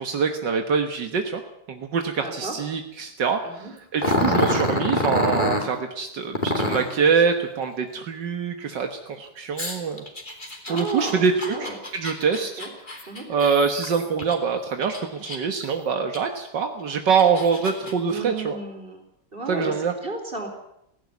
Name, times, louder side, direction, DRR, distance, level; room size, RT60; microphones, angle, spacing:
voice 1, 0.0-1.4 1.7-3.6 3.9-10.0 10.7-12.6 13.3-18.6 19.5-19.9, right 6 dB, 75° right, 5 dB, 2.0 m, -24 dB
voice 2, 2.2-2.5 3.4-3.7 4.5-4.7 10.6-11.8 12.6-12.7 13.1-13.2 18.1-19.0 19.3-20.5, right 2 dB, 30° right, 3 dB, 4.4 m, -33 dB
Growling, 4.0-5.7 6.3-6.9 9.6-14.3 14.8-15.6 16.1-16.2 16.9-17.9, left 1 dB, 25° left, 3.2 m, -26 dB
17.0 x 16.5 x 9.5 m, 0.80 s
omnidirectional pair, 1.9 m